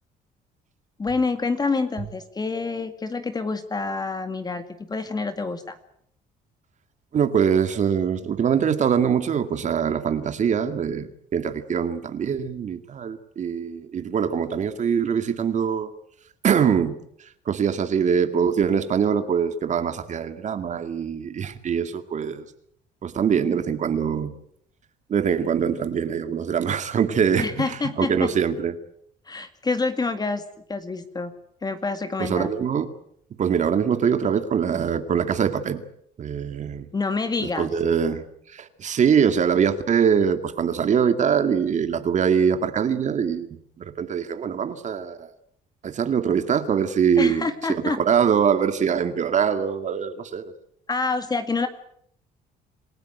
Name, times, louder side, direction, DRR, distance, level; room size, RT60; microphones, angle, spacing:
voice 1, 1.0-5.8 27.4-28.3 29.3-30.4 30.7-31.3 31.6-32.5 36.9-37.7 47.2-48.0 50.9-51.7, left 4 dB, 25° left, 9 dB, 2.1 m, -27 dB
voice 2, 7.1-15.9 16.4-17.0 17.5-22.5 23.0-24.3 25.1-28.7 32.2-32.9 33.4-35.8 36.2-36.9 37.6-38.2 38.5-45.3 45.8-50.5, right 7 dB, 45° right, 9 dB, 2.1 m, -23 dB
27.5 x 16.0 x 9.3 m, 0.70 s
cardioid pair, 110°, 17 cm